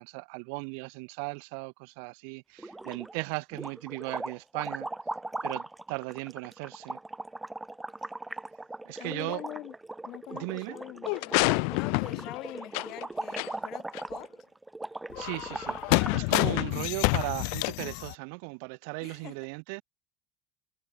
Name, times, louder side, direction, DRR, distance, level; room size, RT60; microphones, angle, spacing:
voice 1, 0.0-4.9 5.4-7.0 8.8-9.4 10.3-10.8 15.2-19.8, right 40 dB or more, 70° right, 1.3 m, -37 dB
sound 1, 2.6-3.2 3.5-16.3, right 2 dB, 5° right, 0.4 m, -39 dB
voice 2, 9.0-9.7 10.0-14.3 16.4-16.6 19.0-19.4, left 16 dB, 45° left, 6.6 m, -44 dB
sound 2, 11.1-13.0 13.4-13.5 13.9-14.0 15.1-18.1, left 40 dB or more, 65° left, 0.4 m, -28 dB
cardioid pair, 175°, 0 cm